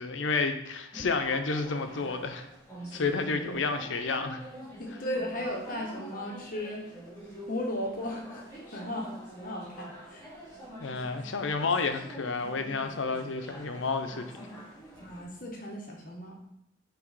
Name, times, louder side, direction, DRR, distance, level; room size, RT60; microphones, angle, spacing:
voice 1, 0.0-2.5 2.9-4.4 10.8-14.5, left 4 dB, 80° left, 7 dB, 0.6 m, -30 dB
sound 1, 0.9-15.2, right 1 dB, 15° left, 2.4 m, -46 dB
voice 2, 4.8-7.0 7.5-8.4 8.7-10.3 15.0-16.4, left 1 dB, 45° left, 0 dB, 0.9 m, -36 dB
6.0 x 3.4 x 4.7 m, 0.79 s
head